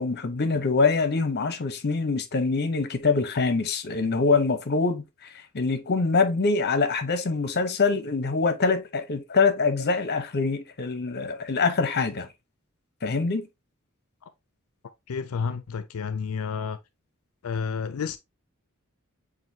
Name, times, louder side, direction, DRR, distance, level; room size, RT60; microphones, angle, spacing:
voice 1, 0.0-12.3 13.0-13.5, left 4 dB, 50° left, 0.8 m, -24 dB
voice 2, 15.1-16.8 17.4-18.2, left 6 dB, 70° left, 0.4 m, -30 dB
7.6 x 2.6 x 2.7 m
head